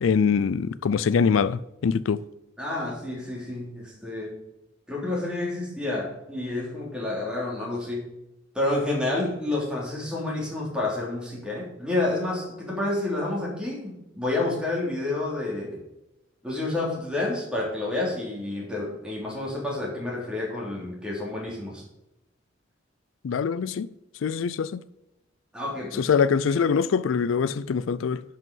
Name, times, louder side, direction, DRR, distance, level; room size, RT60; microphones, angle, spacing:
voice 1, 0.0-2.2 23.2-23.9 24.2-24.8 26.0-28.2, left 6 dB, 90° left, 0.4 m, -23 dB
voice 2, 2.6-4.4 4.9-8.1 8.5-15.8 16.4-21.8 25.5-26.1, left 2 dB, 5° right, 3.2 m, -29 dB
11.0 x 5.6 x 5.5 m
head